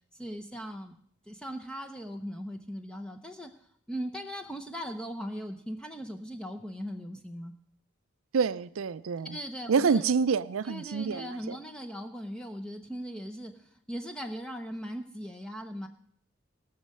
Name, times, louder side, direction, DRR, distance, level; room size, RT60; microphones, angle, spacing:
voice 1, 0.1-1.0 1.3-7.5 9.2-10.1 10.6-15.9, equal, 5° left, 0.6 m, -39 dB
voice 2, 8.3-9.4 9.7-11.6, right 5 dB, 85° right, 0.4 m, -27 dB
18.0 x 6.5 x 7.5 m
head